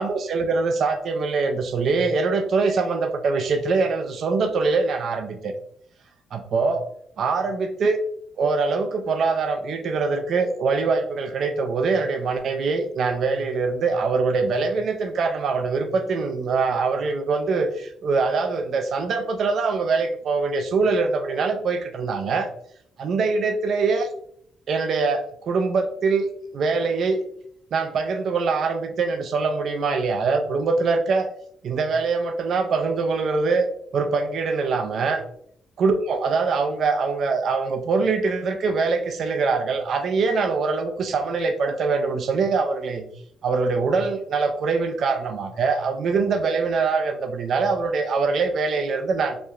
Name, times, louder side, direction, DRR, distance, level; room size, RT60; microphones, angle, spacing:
voice 1, 0.0-5.5 6.3-6.8 7.2-8.0 8.4-22.5 23.0-24.1 24.7-27.2 27.7-31.3 31.6-35.2 35.8-43.0 43.4-49.4, right 4 dB, 60° right, 6 dB, 0.3 m, -23 dB
2.8 x 2.1 x 2.3 m, 0.67 s
cardioid pair, 90°, 0 cm